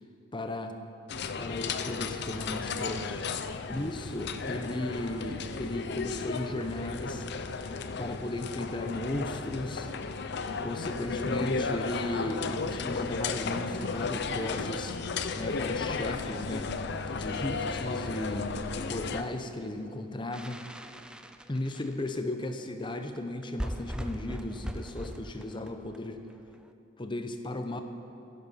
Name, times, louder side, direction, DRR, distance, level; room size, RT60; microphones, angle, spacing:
voice 1, 0.3-0.7 1.4-3.3 3.7-7.3 8.0-9.9 10.6-14.9 15.3-16.7 17.1-20.6 21.5-26.2 27.0-27.8, left 1 dB, 25° left, 7 dB, 0.7 m, -35 dB
sound 1, 1.1-19.2, left 4 dB, 55° left, 0.6 m, -34 dB
sound 2, 20.3-22.2 22.9-23.0 23.2-23.3 23.4-26.5, equal, 5° right, 0.4 m, -39 dB
14.5 x 10.5 x 5.7 m, 2.8 s
head